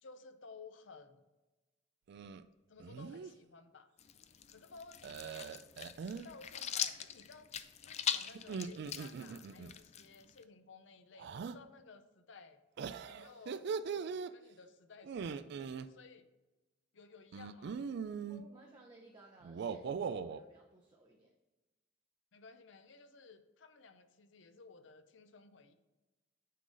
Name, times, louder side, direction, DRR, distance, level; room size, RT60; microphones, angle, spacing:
voice 1, 0.0-1.3 2.7-3.9 4.5-5.7 6.2-7.5 7.8-12.6 13.0-16.3 16.9-17.8 22.3-25.7, left 4 dB, 70° left, 10 dB, 0.6 m, -56 dB
sound 1, 2.1-2.4 2.8-3.3 5.0-6.3 8.3-9.7 11.2-11.6 12.8-14.3 15.0-15.9 17.3-18.4 19.4-20.4, right 6 dB, 60° right, 0.3 m, -41 dB
sound 2, 4.0-10.4, left 9 dB, 35° left, 0.3 m, -41 dB
voice 2, 18.3-21.3, right 2 dB, 25° right, -2 dB, 0.7 m, -59 dB
9.3 x 3.8 x 3.9 m, 1.1 s
head